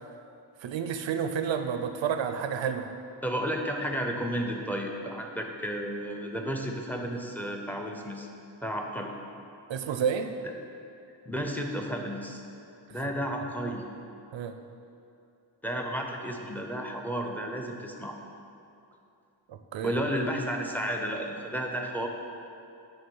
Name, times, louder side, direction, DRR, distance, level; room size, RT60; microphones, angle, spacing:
voice 1, 0.6-2.9 9.7-10.3 14.3-14.5 19.5-20.0, right 7 dB, 90° right, 7 dB, 0.6 m, -30 dB
voice 2, 3.2-8.3 8.6-9.1 11.3-12.4 12.9-13.8 15.6-18.2 19.8-22.1, equal, 5° left, 1 dB, 0.7 m, -32 dB
9.2 x 3.7 x 5.4 m, 2.6 s
wide cardioid pair, 90°, 44 cm